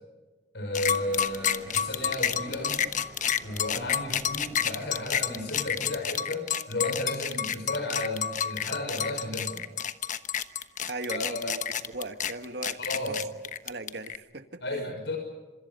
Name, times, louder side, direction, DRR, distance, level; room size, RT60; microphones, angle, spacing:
voice 1, 0.5-2.8 3.4-9.6 11.1-11.6 12.8-13.3 14.6-15.2, left 1 dB, 80° left, 3 dB, 5.9 m, -33 dB
sound 1, 0.7-14.2, left 8 dB, 45° left, 1.1 m, -29 dB
sound 2, 0.8-6.0, equal, 10° right, 7.6 m, -50 dB
voice 2, 10.9-11.6 11.9-12.8 13.0-13.2 13.6-14.8, right 2 dB, 65° right, 8 dB, 1.8 m, -38 dB
29.5 x 26.5 x 5.5 m, 1.2 s
head